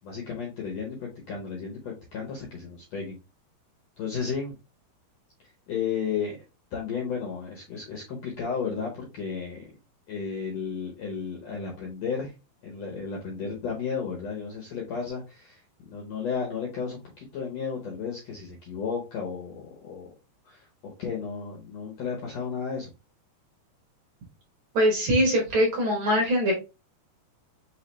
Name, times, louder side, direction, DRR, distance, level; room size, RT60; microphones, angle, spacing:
voice 1, 0.0-3.2 4.0-4.5 5.7-6.4 6.7-9.7 10.1-12.3 12.6-20.1 20.4-22.9, left 6 dB, 85° left, -1 dB, 1.5 m, -33 dB
voice 2, 24.7-26.5, equal, 65° right, 0 dB, 1.9 m, -22 dB
5.7 x 2.9 x 3.2 m, 0.29 s
omnidirectional pair, 4.5 m